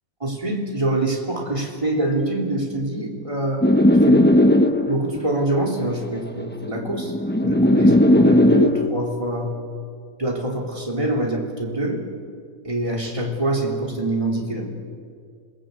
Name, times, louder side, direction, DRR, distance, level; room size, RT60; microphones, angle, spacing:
voice 1, 0.2-3.7 4.0-4.3 4.9-7.1 7.4-9.6 10.2-12.0 12.7-14.7, right 1 dB, 20° right, -1 dB, 3.6 m, -25 dB
sound 1, 3.6-5.1 6.2-8.9, left 1 dB, 10° left, 0.7 m, -16 dB
28.5 x 19.0 x 8.4 m, 2.2 s
omnidirectional pair, 1.7 m